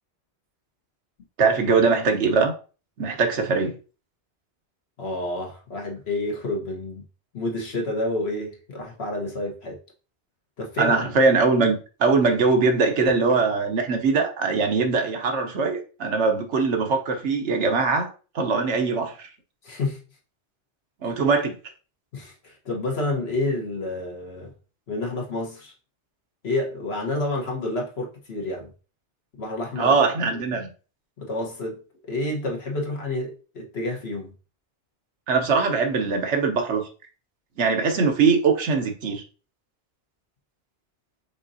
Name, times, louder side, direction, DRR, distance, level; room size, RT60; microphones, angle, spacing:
voice 1, 1.4-2.5 3.0-3.7 10.8-18.1 18.3-19.3 21.0-21.6 29.8-30.7 35.3-36.9 37.6-39.2, right 4 dB, 80° right, 1.2 m, -21 dB
voice 2, 5.0-7.0 7.3-9.8 10.6-11.0 19.6-20.0 22.1-24.5 24.9-25.7 26.4-28.7 29.4-30.0 31.2-34.3, left 2 dB, 65° left, 1.4 m, -29 dB
5.3 x 3.7 x 2.6 m
omnidirectional pair, 1.2 m